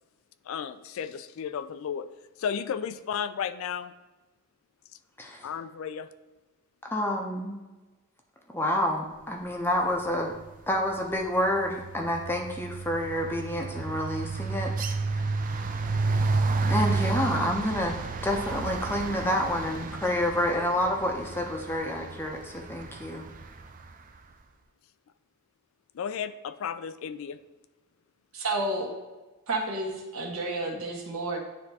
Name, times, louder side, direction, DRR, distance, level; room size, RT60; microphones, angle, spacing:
voice 1, 0.5-2.1 2.4-3.9 5.4-6.1 25.9-27.4, left 7 dB, 65° left, 12 dB, 0.3 m, -33 dB
voice 2, 6.8-7.6 8.5-10.3 10.7-14.7 16.7-18.0 18.2-23.3, left 1 dB, 10° left, 1 dB, 0.6 m, -28 dB
sound 1, 10.1-10.5 10.8-23.9, right 3 dB, 40° right, 0.4 m, -31 dB
voice 3, 28.3-28.9 29.5-31.4, right 2 dB, 70° right, 0 dB, 1.3 m, -30 dB
9.6 x 3.5 x 2.8 m, 1.2 s
head